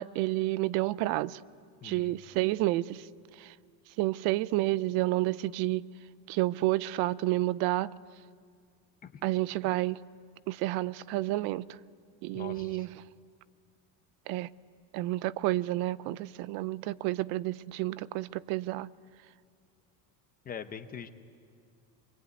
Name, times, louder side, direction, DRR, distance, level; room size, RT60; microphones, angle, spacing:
voice 1, 0.0-1.4 1.8-3.1 3.4-3.5 4.0-5.9 6.3-7.9 9.2-10.0 10.5-11.6 12.2-12.9 14.3-14.5 14.9-18.9, right 17 dB, 55° right, 0.6 m, -30 dB
voice 2, 1.8-2.1 9.0-9.2 12.3-12.9 20.4-21.1, left 7 dB, 20° left, 0.7 m, -42 dB
25.0 x 24.0 x 9.4 m
cardioid pair, 175°, 45 cm